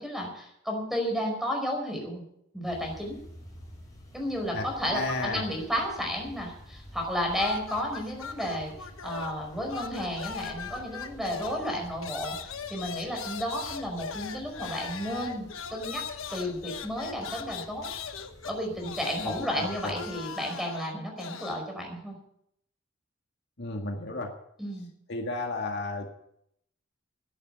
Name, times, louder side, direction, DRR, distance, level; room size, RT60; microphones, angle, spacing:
voice 1, 0.0-2.2 2.5-3.2 4.1-8.7 9.0-16.0 16.3-17.9 18.4-22.1 24.6-24.9, equal, ahead, 1 dB, 5.1 m, -32 dB
sound 1, 2.6-20.2, equal, 15° left, 5.6 m, -50 dB
voice 2, 4.9-5.4 19.2-19.9 23.6-24.3 25.1-26.1, left 2 dB, 55° left, 2 dB, 1.9 m, -33 dB
sound 2, 7.3-9.4 9.7-21.6, left 6 dB, 85° left, 1.2 m, -40 dB
14.0 x 10.5 x 8.1 m, 0.73 s
head